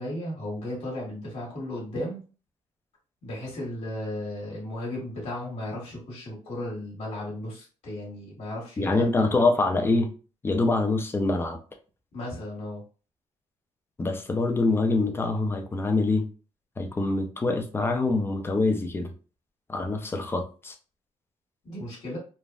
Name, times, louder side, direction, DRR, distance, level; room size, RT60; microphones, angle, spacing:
voice 1, 0.0-2.2 3.2-9.3 12.1-12.8 21.6-22.2, left 1 dB, 65° left, -3 dB, 1.3 m, -35 dB
voice 2, 8.8-10.1 10.4-11.6 14.0-16.3 16.8-19.1 19.7-20.7, left 3 dB, 20° left, 5 dB, 0.5 m, -25 dB
3.4 x 2.1 x 2.4 m, 0.37 s
cardioid pair, 110°, 12 cm